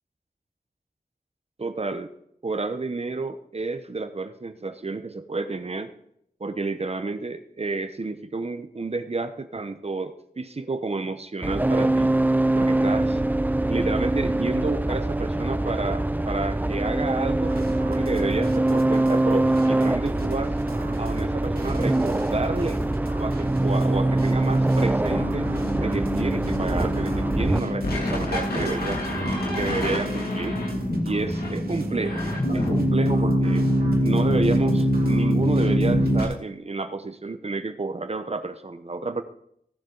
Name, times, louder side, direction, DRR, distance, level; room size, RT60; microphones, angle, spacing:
voice 1, 1.6-2.1 2.4-5.9 6.4-12.1 12.5-13.2 13.7-20.5 21.0-22.8 23.2-25.5 25.8-30.6 31.0-32.2 32.5-33.7 34.0-39.2, right 3 dB, 40° right, 9 dB, 0.8 m, -30 dB
sound 1, 11.4-27.6, right 1 dB, 10° right, 0.4 m, -23 dB
sound 2, 17.4-36.3, right 2 dB, 80° right, 2.3 m, -39 dB
sound 3, 25.1-36.2, equal, 90° left, 2.6 m, -24 dB
16.5 x 7.4 x 4.0 m, 0.72 s
wide cardioid pair, 75°, 15 cm